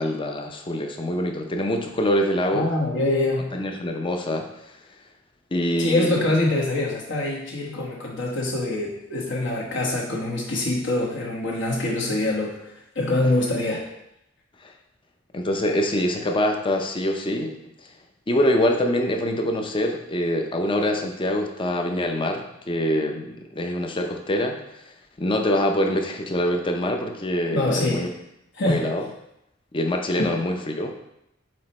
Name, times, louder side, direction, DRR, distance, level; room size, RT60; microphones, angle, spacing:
voice 1, 0.0-2.7 3.5-4.7 5.5-6.3 14.6-14.7 15.3-17.6 18.3-24.6 24.8-24.9 25.2-28.1 28.6-29.0 29.7-30.9, left 1 dB, 25° left, 3 dB, 0.6 m, -24 dB
voice 2, 2.5-3.5 5.8-12.6 12.9-13.8 27.5-28.0 28.6-28.8 30.2-30.3, left 2 dB, 65° left, -2 dB, 1.2 m, -24 dB
7.6 x 2.9 x 4.2 m, 0.84 s
head